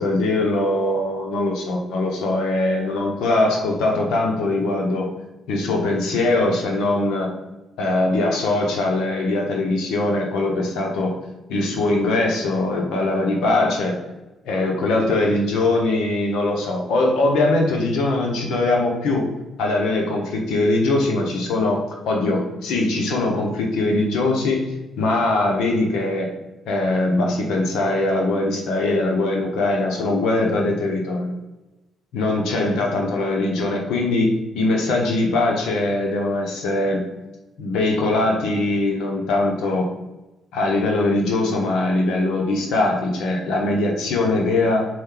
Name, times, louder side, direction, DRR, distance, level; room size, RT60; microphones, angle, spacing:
voice 1, 0.0-5.1 5.5-7.3 7.8-11.1 11.5-14.0 14.4-19.3 19.6-24.6 25.0-26.3 26.7-31.3 32.1-37.0 37.6-39.9 40.5-44.9, left 2 dB, 85° left, 1 dB, 1.3 m, -21 dB
5.2 x 4.6 x 3.9 m, 1.0 s
cardioid pair, 90°, 0 cm